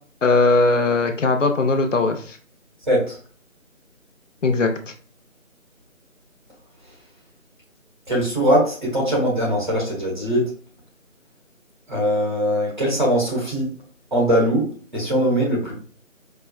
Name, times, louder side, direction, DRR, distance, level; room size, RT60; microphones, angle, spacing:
voice 1, 0.2-2.2 4.4-4.7, left 3 dB, 65° left, 5 dB, 0.7 m, -18 dB
voice 2, 2.9-3.2 8.1-10.5 11.9-13.7 14.1-15.7, equal, 35° right, -4 dB, 1.1 m, -21 dB
4.6 x 2.0 x 2.3 m, 0.42 s
figure-of-eight pair, 175°, 40 cm